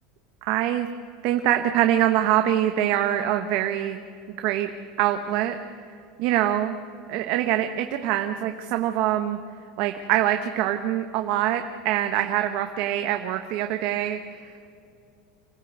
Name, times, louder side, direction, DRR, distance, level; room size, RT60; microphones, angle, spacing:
voice 1, 0.4-0.9 1.2-4.0 4.4-4.7 5.0-5.6 5.8-6.8 7.1-9.4 9.8-14.5, right 12 dB, 50° right, 6 dB, 1.1 m, -24 dB
26.0 x 16.0 x 8.2 m, 2.5 s
supercardioid pair, 165°, 3 cm